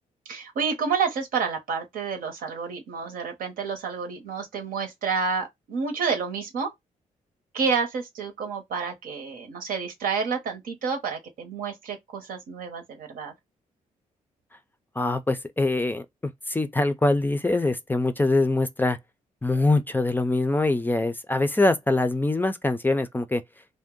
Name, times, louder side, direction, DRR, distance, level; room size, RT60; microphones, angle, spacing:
voice 1, 0.3-6.7 7.5-13.3, right 5 dB, 75° right, 0.9 m, -29 dB
voice 2, 15.0-16.0 16.5-19.0 19.4-23.4, left 2 dB, 15° left, 0.4 m, -23 dB
2.5 x 2.1 x 3.6 m
cardioid pair, 65°, 14 cm